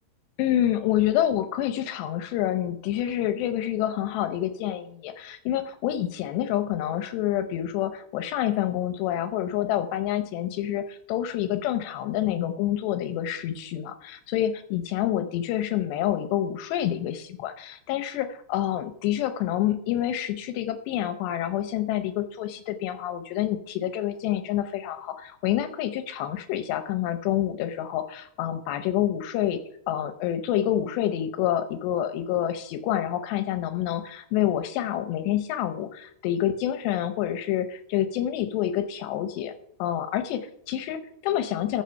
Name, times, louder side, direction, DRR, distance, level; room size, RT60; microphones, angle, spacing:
voice 1, 0.4-29.6 29.9-39.5 39.8-41.8, left 12 dB, 80° left, 9 dB, 2.9 m, -27 dB
14.5 x 7.0 x 5.7 m, 0.70 s
omnidirectional pair, 4.9 m